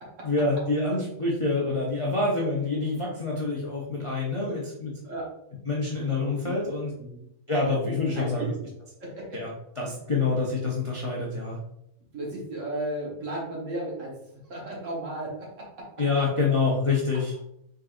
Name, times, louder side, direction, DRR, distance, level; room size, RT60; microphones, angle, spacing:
voice 1, 0.2-4.9 5.7-6.9 7.5-8.4 9.3-9.5 9.8-11.6 16.0-17.3, left 3 dB, 50° left, -4 dB, 0.3 m, -26 dB
voice 2, 8.1-8.5 9.0-9.4 12.1-15.9, right 1 dB, 50° right, -3 dB, 1.5 m, -35 dB
3.8 x 3.8 x 2.5 m, 0.78 s
omnidirectional pair, 1.7 m